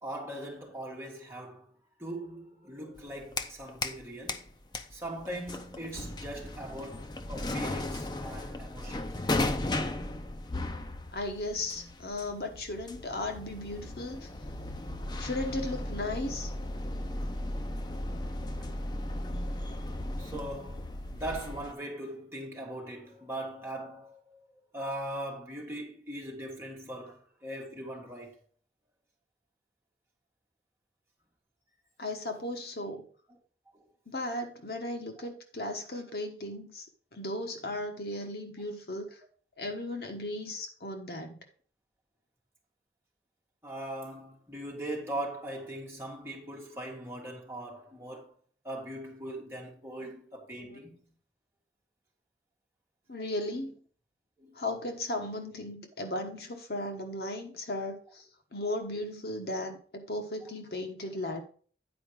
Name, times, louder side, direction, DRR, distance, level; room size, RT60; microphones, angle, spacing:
voice 1, 0.0-1.7 2.0-4.5 4.9-9.1 17.0-17.2 20.2-24.5 24.7-28.3 33.7-33.9 35.2-35.3 43.6-48.3 48.6-51.0 54.4-54.6, right 1 dB, 15° right, 2.0 m, -40 dB
sound 1, 3.0-4.0 4.3-21.7, left 1 dB, 25° left, 0.6 m, -36 dB
voice 2, 11.1-14.3 15.2-16.5 32.0-33.0 34.1-36.8 37.1-39.2 39.6-41.4 50.6-50.8 53.1-53.8 54.6-58.2 58.5-61.4, left 1 dB, 60° left, 1.3 m, -36 dB
9.4 x 4.9 x 4.7 m
head